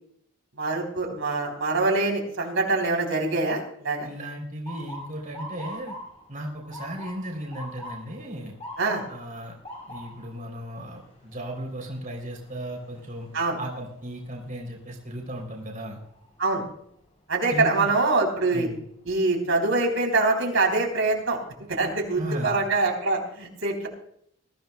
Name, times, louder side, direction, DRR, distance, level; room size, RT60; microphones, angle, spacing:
voice 1, 0.6-4.1 8.8-9.0 13.3-13.6 16.4-16.6 17.3-18.7 19.1-21.4 21.7-23.9, right 3 dB, 65° right, 1 dB, 3.5 m, -24 dB
voice 2, 4.0-6.0 6.3-8.5 9.1-9.6 9.9-13.3 13.6-16.0 17.5-17.9 18.5-18.8 22.2-22.6, equal, 35° right, 0 dB, 3.4 m, -35 dB
Motor vehicle (road) / Siren, 4.7-16.6 17.0-17.4 18.2-18.5 20.4-20.6 21.2-21.3 21.7-22.4, equal, 30° left, 4.5 m, -44 dB
21.5 x 14.5 x 2.3 m, 0.68 s
head